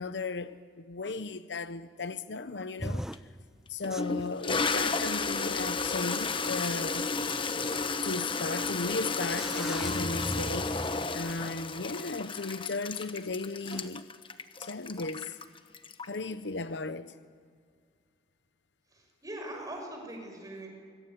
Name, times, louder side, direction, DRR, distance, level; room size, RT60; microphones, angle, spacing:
voice 1, 0.0-3.1 3.7-7.1 8.0-14.1 14.6-15.4 16.0-17.2, left 3 dB, 80° left, 0.8 m, -36 dB
sound 1, 2.8-3.2 3.9-4.3 5.6-5.7 6.2-6.3 7.4-7.5 8.7-8.8 9.2-11.5 13.7-13.9, equal, 5° right, 0.6 m, -38 dB
Toilet flush, 3.1-3.2 3.8-16.3, left 4 dB, 30° left, 1.2 m, -33 dB
voice 2, 18.9-20.7, right 1 dB, 20° right, 6.1 m, -41 dB
25.0 x 22.5 x 9.3 m
head